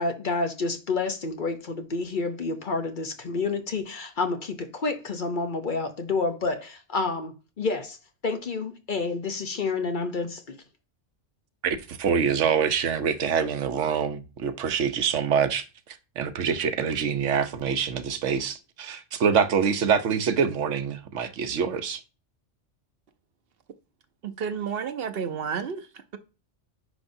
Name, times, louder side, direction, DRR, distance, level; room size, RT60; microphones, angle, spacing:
voice 1, 0.0-8.0 8.2-10.6, left 3 dB, 50° left, 0.8 m, -29 dB
voice 2, 11.6-15.6 16.2-22.0, right 7 dB, 80° right, 1.1 m, -25 dB
voice 3, 24.2-26.2, right 7 dB, 60° right, 0.8 m, -31 dB
9.7 x 5.2 x 2.6 m
omnidirectional pair, 1.2 m